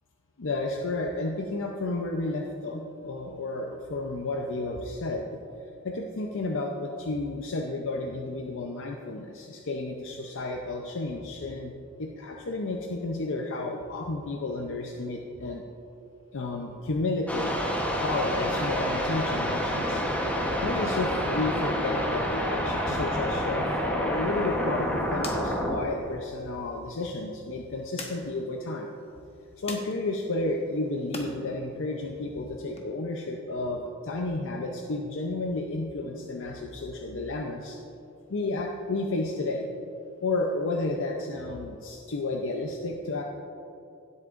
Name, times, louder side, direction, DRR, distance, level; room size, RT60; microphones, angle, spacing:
voice 1, 0.4-5.3 5.8-11.7 12.0-15.6 16.3-17.6 18.0-20.0 20.6-28.9 29.6-37.8 38.3-39.7 40.2-43.2, left 2 dB, 60° left, 1 dB, 0.6 m, -32 dB
sound 1, 17.3-25.8, equal, 5° left, 1.0 m, -28 dB
sound 2, 24.1-31.3 31.7-32.8, left 2 dB, 30° left, 1.1 m, -46 dB
17.0 x 8.2 x 2.6 m, 2.6 s
head